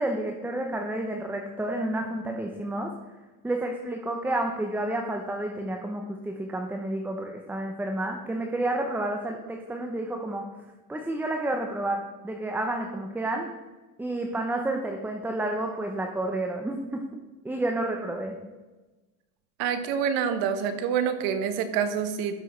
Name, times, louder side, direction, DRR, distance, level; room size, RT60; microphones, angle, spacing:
voice 1, 0.0-2.9 3.4-10.4 10.9-13.5 14.0-17.0 17.4-18.4, right 1 dB, 5° right, 3 dB, 0.8 m, -30 dB
voice 2, 19.6-22.4, right 7 dB, 65° right, 9 dB, 1.4 m, -27 dB
12.5 x 6.2 x 4.5 m, 1.2 s
cardioid pair, 135°, 39 cm